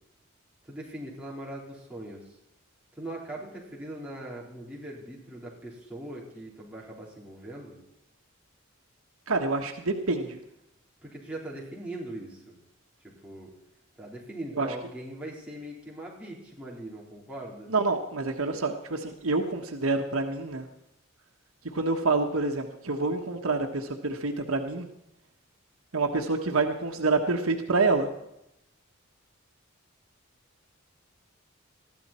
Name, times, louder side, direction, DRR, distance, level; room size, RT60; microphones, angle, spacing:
voice 1, 0.7-2.2 3.0-7.8 11.0-12.5 13.0-13.5 14.0-17.7, right 1 dB, 5° right, -5 dB, 4.1 m, -40 dB
voice 2, 9.3-10.4 14.5-14.7 17.7-20.7 21.7-24.9 25.9-28.1, right 3 dB, 85° right, 4 dB, 1.4 m, -27 dB
21.0 x 14.0 x 4.4 m, 0.87 s
head